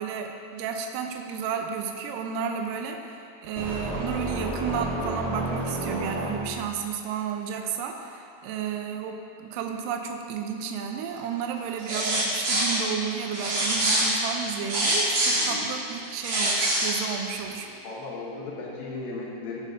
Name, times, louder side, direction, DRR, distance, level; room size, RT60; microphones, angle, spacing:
voice 1, 0.0-17.7, right 7 dB, 90° right, 3 dB, 1.9 m, -32 dB
sound 1, 3.6-6.7, right 1 dB, 5° left, 0.3 m, -31 dB
sound 2, 11.8-12.8 13.3-15.5 16.0-16.9, right 1 dB, 45° right, 2.6 m, -24 dB
voice 2, 17.6-19.6, left 3 dB, 75° left, -3 dB, 2.6 m, -36 dB
17.0 x 6.6 x 2.6 m, 2.6 s
omnidirectional pair, 4.6 m